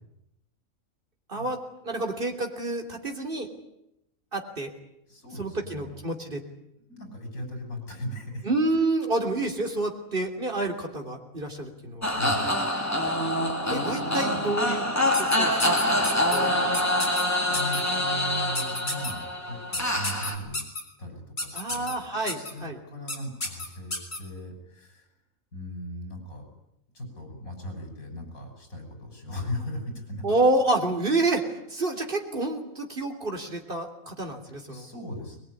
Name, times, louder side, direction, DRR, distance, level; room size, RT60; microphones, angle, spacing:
voice 1, 1.3-3.5 4.3-4.7 5.3-6.4 8.4-12.0 13.7-14.9 15.2-16.8 21.5-22.8 30.2-34.9, right 2 dB, 40° right, 4 dB, 3.4 m, -29 dB
voice 2, 5.1-6.0 6.9-8.4 12.1-12.6 17.4-20.6 21.0-22.0 22.3-25.0 25.5-26.4 26.9-30.2 34.5-35.4, equal, 80° left, 4 dB, 6.8 m, -38 dB
sound 1, 12.0-20.4, left 1 dB, 10° left, 3.0 m, -26 dB
sound 2, 15.1-16.4 16.7-17.2 17.5-17.8 18.5-19.1 19.7-20.8 21.4-21.9 22.3-22.5 23.1-23.2 23.4-24.2, left 2 dB, 45° left, 4.1 m, -31 dB
22.0 x 21.5 x 9.7 m, 0.84 s
omnidirectional pair, 1.4 m